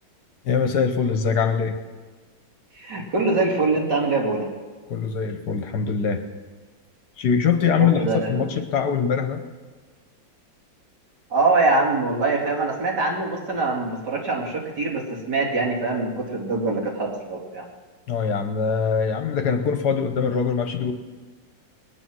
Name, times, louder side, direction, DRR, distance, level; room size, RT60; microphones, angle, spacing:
voice 1, 0.4-1.8 4.9-6.2 7.2-9.4 18.1-20.9, left 6 dB, 65° left, 7 dB, 1.5 m, -23 dB
voice 2, 2.8-4.5 7.7-8.5 11.3-17.6, right 3 dB, 65° right, -2 dB, 3.1 m, -23 dB
20.5 x 9.7 x 6.2 m, 1.4 s
omnidirectional pair, 2.0 m